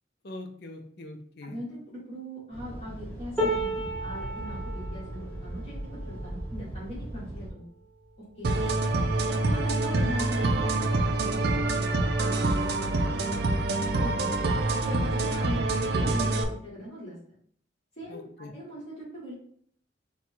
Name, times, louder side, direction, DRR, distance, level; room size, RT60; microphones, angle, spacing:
voice 1, 0.2-1.6 8.6-9.0 15.3-15.4 18.1-18.5, left 2 dB, 60° left, 5 dB, 0.6 m, -43 dB
voice 2, 1.4-7.6 8.2-8.6 9.3-13.3 14.0-14.4 14.8-17.2 18.0-19.3, equal, 35° left, -8 dB, 1.6 m, -40 dB
sound 1, 2.5-7.5, right 1 dB, 15° right, 1.4 m, -38 dB
sound 2, 3.4-9.5 10.1-10.3 10.6-11.4 12.3-12.4, right 1 dB, 10° left, 1.7 m, -36 dB
sound 3, 8.4-16.4, right 2 dB, 60° right, 0.5 m, -26 dB
4.2 x 2.3 x 4.5 m, 0.62 s
head